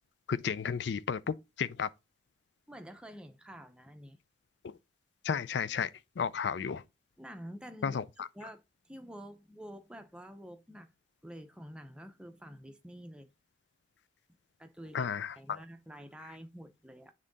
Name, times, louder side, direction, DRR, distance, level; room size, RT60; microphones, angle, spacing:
voice 1, 0.3-1.9 4.6-4.8 5.2-5.9 6.2-6.8 7.8-8.3 14.9-15.6, left 6 dB, 65° left, 0.4 m, -33 dB
voice 2, 2.7-4.2 7.2-8.0 8.4-10.9 11.2-13.3 14.6-15.1 15.4-17.1, equal, 5° right, 0.6 m, -48 dB
7.6 x 3.7 x 3.9 m
head